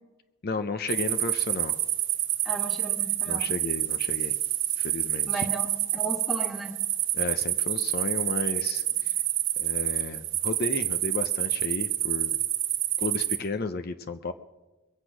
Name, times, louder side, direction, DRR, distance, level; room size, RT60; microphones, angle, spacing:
voice 1, 0.4-1.8 3.3-4.4 4.8-5.5 7.1-9.2 9.6-12.4 13.0-14.3, left 3 dB, 45° left, 9 dB, 0.5 m, -33 dB
sound 1, 0.9-13.4, right 13 dB, 55° right, 1.1 m, -28 dB
voice 2, 2.5-3.5 5.3-6.8, right 2 dB, ahead, 3 dB, 1.7 m, -35 dB
22.5 x 8.1 x 6.1 m, 1.1 s
head